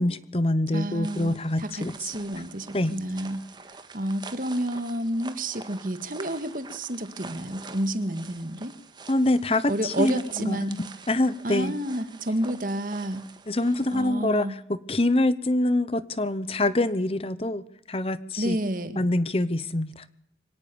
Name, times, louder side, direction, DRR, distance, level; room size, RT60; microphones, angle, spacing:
voice 1, 0.0-1.9 2.7-2.9 9.1-10.1 10.4-11.7 13.5-18.6 19.0-20.0, left 1 dB, 35° left, 16 dB, 0.9 m, -25 dB
voice 2, 0.7-3.4 3.7-8.7 9.7-10.8 11.4-13.3 13.9-14.5 18.4-19.0, right 1 dB, 50° right, 11 dB, 1.8 m, -30 dB
sound 1, 1.0-14.0, right 4 dB, 25° right, 1.6 m, -46 dB
24.5 x 18.0 x 7.1 m, 0.69 s
head